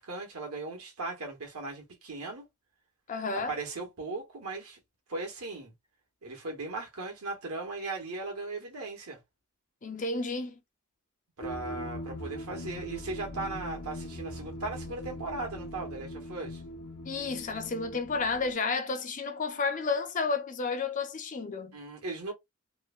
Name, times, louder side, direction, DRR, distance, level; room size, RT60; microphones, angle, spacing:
voice 1, 0.0-2.4 3.5-4.8 5.1-5.7 6.2-9.2 11.4-16.6 21.7-22.3, right 3 dB, 75° right, 1.1 m, -38 dB
voice 2, 3.1-3.5 9.8-10.5 17.0-21.8, left 4 dB, 35° left, 0.4 m, -31 dB
sound 1, 11.4-18.5, left 1 dB, 85° left, 0.9 m, -41 dB
3.0 x 2.1 x 2.3 m
head